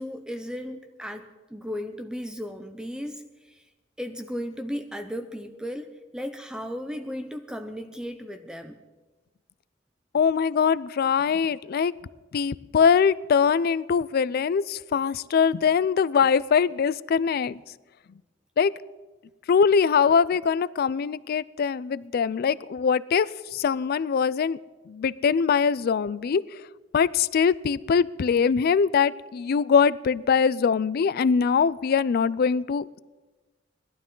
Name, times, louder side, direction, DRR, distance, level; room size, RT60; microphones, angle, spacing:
voice 1, 0.0-3.7 4.0-8.8, equal, 5° right, 7 dB, 0.5 m, -35 dB
voice 2, 10.1-11.9 12.3-17.6 18.6-18.7 19.5-24.6 24.9-26.5 26.9-33.0, left 6 dB, 50° left, 20 dB, 0.3 m, -22 dB
19.0 x 12.0 x 3.8 m, 1.2 s
head